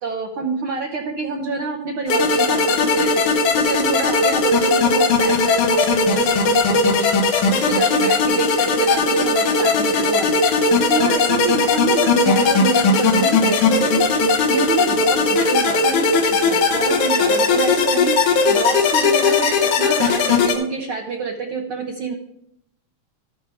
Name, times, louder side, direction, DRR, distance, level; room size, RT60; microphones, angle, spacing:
voice 1, 0.0-3.2 3.5-7.1 7.4-22.1, right 4 dB, 70° right, 0 dB, 1.3 m, -27 dB
sound 1, 2.1-20.5, left 3 dB, 75° left, 2.6 m, -18 dB
13.0 x 10.0 x 3.5 m, 0.77 s
omnidirectional pair, 3.5 m